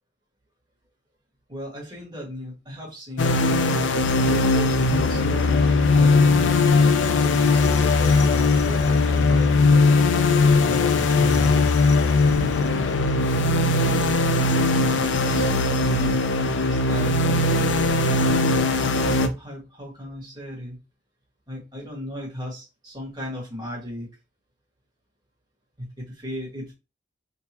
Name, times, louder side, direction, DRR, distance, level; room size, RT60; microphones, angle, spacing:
voice 1, 1.5-3.5 4.3-6.5 7.1-9.8 10.6-11.8 14.9-16.2 16.6-17.2 18.8-20.8 21.5-24.1 25.8-26.7, equal, 25° right, -4 dB, 1.7 m, -35 dB
sound 1, 3.2-19.3, left 3 dB, 85° left, 0.4 m, -19 dB
3.7 x 2.7 x 2.9 m, 0.27 s
head